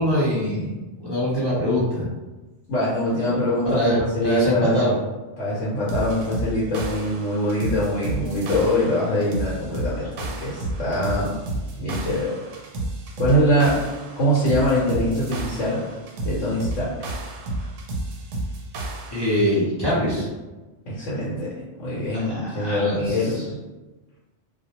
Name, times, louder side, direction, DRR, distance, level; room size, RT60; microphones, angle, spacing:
voice 1, 0.0-2.0 3.3-3.4 3.7-4.9 19.1-20.3 22.1-23.4, equal, 30° left, -9 dB, 0.5 m, -23 dB
voice 2, 2.7-4.9 5.4-11.4 11.8-12.4 13.2-13.8 14.2-15.8 16.2-16.9 20.9-23.6, equal, 80° left, -8 dB, 1.1 m, -23 dB
sound 1, 5.9-19.5, right 2 dB, 90° right, 1.0 m, -31 dB
2.2 x 2.1 x 2.8 m, 1.2 s
omnidirectional pair, 1.3 m